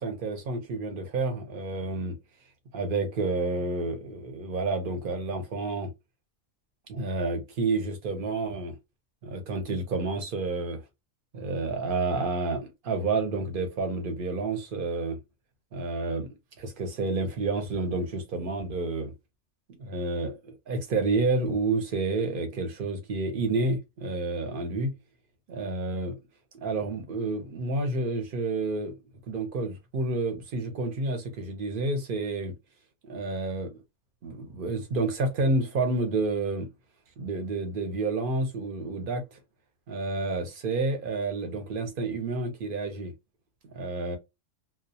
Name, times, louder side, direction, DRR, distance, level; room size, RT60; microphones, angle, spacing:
voice 1, 0.0-2.2 2.7-5.9 6.9-8.7 9.2-10.8 11.3-15.2 15.7-16.3 16.6-19.1 19.8-24.9 25.5-26.2 26.5-28.9 29.3-32.5 33.0-33.8 34.2-36.7 37.2-39.4 39.9-43.1 43.7-44.2, right 3 dB, 55° right, 0.7 m, -29 dB
2.2 x 2.0 x 2.6 m
omnidirectional pair, 1.2 m